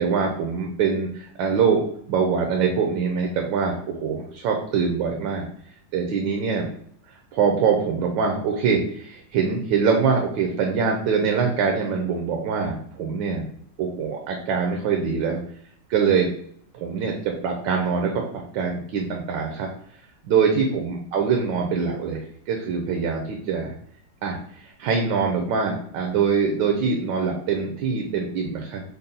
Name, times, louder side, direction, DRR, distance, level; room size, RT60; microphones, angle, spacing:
voice 1, 0.0-1.8 2.1-5.5 5.9-6.7 7.3-13.4 13.8-15.4 15.9-16.3 16.7-19.7 20.2-23.7 24.2-28.8, right 5 dB, 80° right, 2 dB, 1.3 m, -24 dB
4.0 x 2.0 x 3.8 m, 0.65 s
omnidirectional pair, 2.0 m